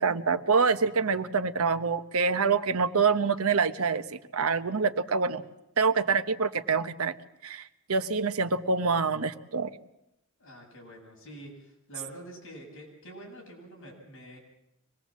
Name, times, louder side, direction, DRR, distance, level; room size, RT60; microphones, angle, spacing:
voice 1, 0.0-5.4 5.8-7.1 7.4-9.7, right 5 dB, 85° right, 10 dB, 1.0 m, -26 dB
voice 2, 10.4-14.4, right 1 dB, 65° left, 0 dB, 7.8 m, -46 dB
24.5 x 20.0 x 7.5 m, 0.85 s
head